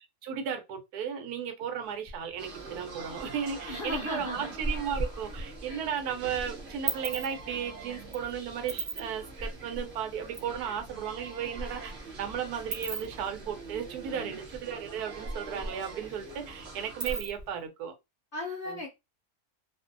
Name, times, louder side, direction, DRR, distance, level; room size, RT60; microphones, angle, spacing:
voice 1, 0.0-11.9 12.2-17.9 18.7-18.8, right 8 dB, 85° right, 1.2 m, -35 dB
sound 1, 1.8-17.5, right 1 dB, 15° left, 0.7 m, -44 dB
sound 2, 2.4-17.2, right 3 dB, 45° right, 0.9 m, -45 dB
voice 2, 3.6-4.6 14.1-14.4 18.3-18.9, left 2 dB, 60° left, 0.5 m, -36 dB
sound 3, 5.2-6.0 6.3-10.5 10.8-10.9 11.1-15.0 15.3-15.4 15.7-17.6, right 4 dB, 60° right, 0.4 m, -39 dB
2.5 x 2.4 x 2.5 m
omnidirectional pair, 1.6 m